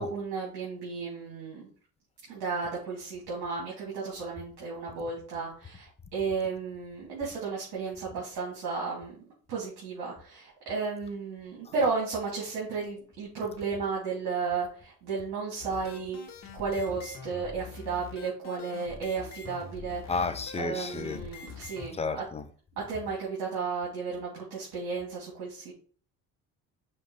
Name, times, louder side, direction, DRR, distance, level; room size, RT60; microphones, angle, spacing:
voice 1, 0.0-1.7 2.3-9.1 9.5-16.2 16.5-20.3 20.6-22.2 22.8-25.7, right 4 dB, 65° right, 2.9 m, -33 dB
sound 1, 15.6-21.9, left 5 dB, 60° left, 1.4 m, -45 dB
voice 2, 20.1-21.2 21.9-22.4, left 4 dB, 20° left, 0.6 m, -32 dB
6.4 x 2.8 x 5.5 m
cardioid pair, 115°, 31 cm